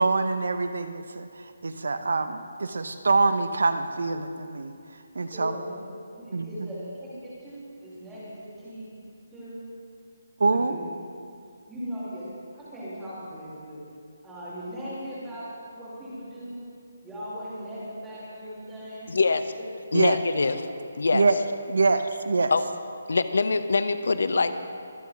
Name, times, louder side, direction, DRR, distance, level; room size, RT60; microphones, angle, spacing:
voice 1, 0.0-4.7 5.1-5.5 6.3-6.7 10.4-10.7 19.9-20.2 21.1-21.4 21.7-22.5, right 3 dB, 80° right, 10 dB, 0.8 m, -25 dB
voice 2, 5.3-5.8 6.1-8.9 9.3-9.6 10.5-10.8 11.7-13.8 14.2-15.5 15.7-16.6 17.0-19.1 19.6-19.7 20.2-20.5, equal, 5° right, -12 dB, 4.2 m, -39 dB
voice 3, 19.1-19.5 19.9-20.6 21.0-21.2 22.5-22.6 23.1-24.6, left 4 dB, 70° left, 11 dB, 0.7 m, -23 dB
24.5 x 8.6 x 4.0 m, 2.4 s
hypercardioid pair, 170°, 0 cm